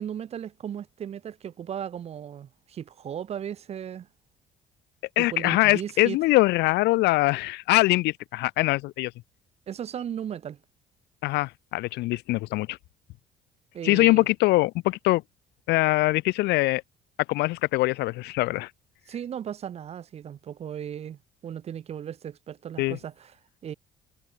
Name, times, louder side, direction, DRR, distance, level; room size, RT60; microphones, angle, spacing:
voice 1, 0.0-4.1 5.2-6.2 9.7-10.6 13.7-14.3 19.1-23.3 23.6-23.7, right 9 dB, 40° right, 0.5 m, -36 dB
voice 2, 5.2-9.1 11.2-12.8 13.8-15.2 15.7-16.8 17.3-18.7 22.8-23.0, left 20 dB, 80° left, 0.6 m, -23 dB
cardioid pair, 110°, 17 cm